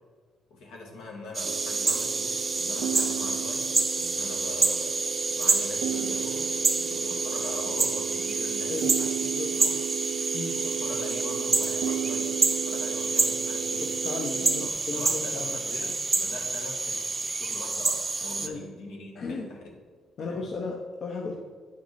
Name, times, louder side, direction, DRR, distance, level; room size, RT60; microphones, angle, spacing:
voice 1, 0.5-4.9 5.3-9.3 9.6-9.8 10.5-13.9 14.6-19.7 20.2-20.5, left 2 dB, 90° left, -1 dB, 1.6 m, -42 dB
sound 1, 1.3-18.5, right 3 dB, 30° right, 0.5 m, -28 dB
sound 2, 1.4-14.7, right 9 dB, 90° right, 0.3 m, -34 dB
voice 2, 13.8-15.9 18.4-18.6 19.1-19.5 20.2-21.4, left 4 dB, 60° left, 1 dB, 0.7 m, -35 dB
8.3 x 4.6 x 4.0 m, 1.5 s
cardioid pair, 90°, 0 cm